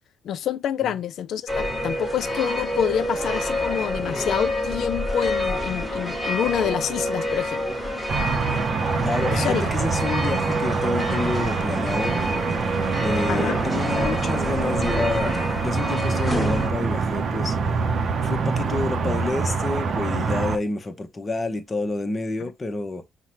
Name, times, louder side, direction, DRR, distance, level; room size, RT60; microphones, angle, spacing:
voice 1, 0.2-7.6 9.3-9.6 13.1-13.6 22.4-22.5, left 9 dB, 70° left, 0.3 m, -27 dB
sound 1, 1.5-16.7, equal, 5° right, 1.3 m, -28 dB
sound 2, 8.1-20.6, right 5 dB, 55° right, 0.6 m, -25 dB
voice 2, 9.0-12.3 13.0-17.6 18.2-23.0, left 3 dB, 30° left, 0.8 m, -28 dB
5.5 x 2.1 x 2.9 m
cardioid pair, 90°, 0 cm